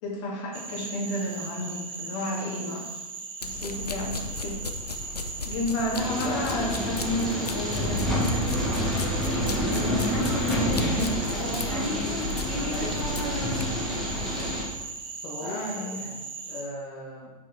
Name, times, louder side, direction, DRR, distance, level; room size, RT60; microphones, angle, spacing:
voice 1, 0.0-2.8 3.4-4.5 5.4-8.5 9.6-12.3 13.5-13.6 15.4-16.0, left 1 dB, 50° left, -3 dB, 2.2 m, -31 dB
Cricket / Frog, 0.5-16.6, right 4 dB, 25° right, 1.0 m, -38 dB
sound 1, 3.4-13.7, left 3 dB, 85° left, 0.6 m, -37 dB
sound 2, 5.9-14.6, equal, ahead, 1.7 m, -28 dB
voice 2, 12.6-13.0 15.2-17.3, left 1 dB, 30° left, -7 dB, 1.5 m, -39 dB
6.0 x 5.1 x 4.2 m, 1.1 s
figure-of-eight pair, 95°, 20 cm